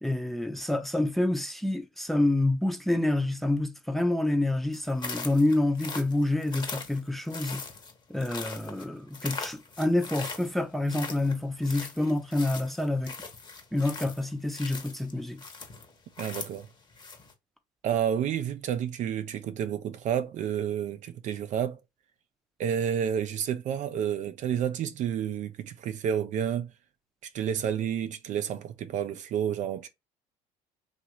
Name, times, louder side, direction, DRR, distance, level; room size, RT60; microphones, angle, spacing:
voice 1, 0.0-7.6 8.1-13.1 13.7-15.4, left 1 dB, ahead, 0.7 m, -27 dB
sound 1, 4.7-17.3, left 4 dB, 30° left, 1.0 m, -41 dB
voice 2, 16.2-16.7 17.8-21.8 22.6-26.7 27.3-29.9, right 9 dB, 55° right, 0.5 m, -30 dB
2.9 x 2.5 x 2.9 m
supercardioid pair, 80°, 15 cm